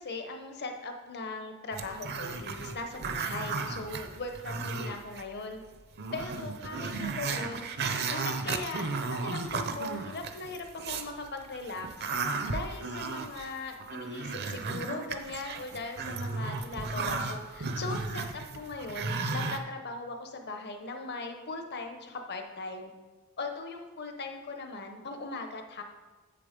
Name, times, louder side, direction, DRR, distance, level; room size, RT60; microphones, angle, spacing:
voice 1, 0.0-5.6 6.1-7.7 8.1-22.9 23.4-25.8, left 3 dB, 50° left, 5 dB, 0.9 m, -39 dB
Growling, 1.7-5.2 5.6-5.7 6.0-11.1 11.5-19.6, right 4 dB, 50° right, 0.6 m, -34 dB
7.6 x 6.9 x 5.1 m, 1.3 s
head